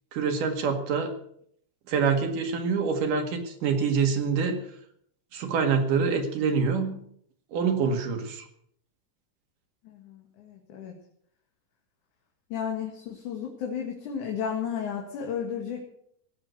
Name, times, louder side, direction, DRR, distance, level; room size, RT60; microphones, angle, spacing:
voice 1, 0.1-1.1 1.9-4.6 5.3-7.0 7.5-8.4, right 5 dB, 80° right, 5 dB, 3.6 m, -26 dB
voice 2, 9.8-10.9 12.5-15.8, left 7 dB, 70° left, 1 dB, 3.3 m, -33 dB
17.5 x 8.0 x 8.1 m, 0.68 s
omnidirectional pair, 3.7 m